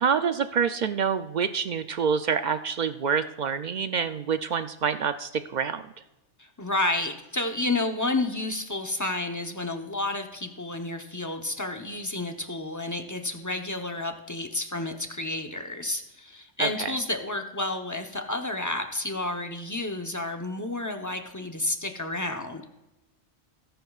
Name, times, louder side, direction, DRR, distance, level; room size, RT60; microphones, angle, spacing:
voice 1, 0.0-5.8 16.6-16.9, right 6 dB, 65° right, 10 dB, 0.4 m, -27 dB
voice 2, 6.4-22.7, left 2 dB, 20° left, 5 dB, 0.7 m, -30 dB
20.0 x 10.5 x 2.4 m, 1.0 s
omnidirectional pair, 1.3 m